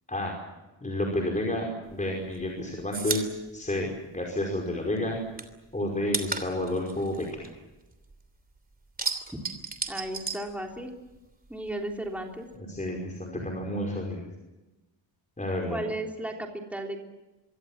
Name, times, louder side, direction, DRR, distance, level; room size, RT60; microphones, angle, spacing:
voice 1, 0.8-5.2 5.7-7.3 12.6-14.3 15.4-15.8, left 1 dB, 15° left, 0 dB, 5.1 m, -30 dB
sound 1, 1.9-4.7 5.0-8.3 8.6-11.2 11.4-12.6, right 4 dB, 20° right, 3.1 m, -35 dB
voice 2, 9.9-10.9 11.5-12.5 15.7-17.0, right 1 dB, 5° right, 1 dB, 3.4 m, -34 dB
26.0 x 24.0 x 7.4 m, 1.0 s
wide cardioid pair, 160°, 47 cm